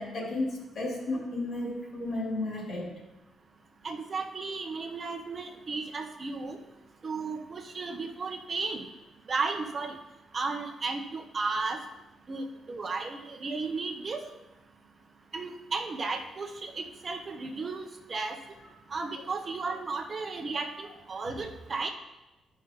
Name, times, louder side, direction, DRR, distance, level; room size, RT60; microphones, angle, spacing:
voice 1, 0.0-2.9, left 2 dB, 55° left, -2 dB, 3.0 m, -33 dB
voice 2, 3.8-6.6 7.0-8.9 9.3-10.0 10.3-11.8 12.3-14.3 15.3-18.4 18.9-21.9, right 4 dB, 35° right, 4 dB, 0.7 m, -34 dB
13.0 x 5.6 x 3.8 m, 1.0 s
cardioid pair, 140°, 0 cm